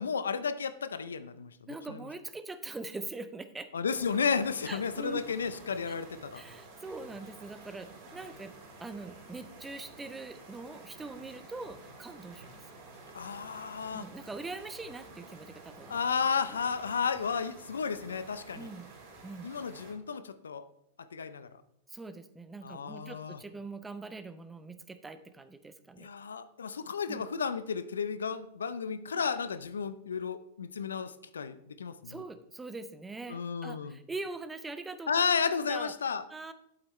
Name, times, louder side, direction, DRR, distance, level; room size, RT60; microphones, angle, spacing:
voice 1, 0.0-1.5 1.9-2.0 3.7-6.4 13.1-14.1 15.9-18.7 19.4-20.7 21.1-21.5 22.6-23.4 26.0-32.2 33.3-34.0 35.1-36.2, left 6 dB, 85° left, 13 dB, 0.5 m, -33 dB
voice 2, 1.7-3.7 4.7-5.2 5.9-6.0 6.3-8.5 8.8-12.6 13.9-16.0 16.5-16.6 18.5-18.9 19.2-19.5 21.9-26.1 27.1-27.2 32.0-35.1 35.7-35.9 36.3-36.5, right 3 dB, 10° right, 11 dB, 0.7 m, -43 dB
sound 1, 3.9-19.9, right 2 dB, 55° right, 3.1 m, -51 dB
8.6 x 7.9 x 3.2 m, 0.76 s
hypercardioid pair, 105°, 0 cm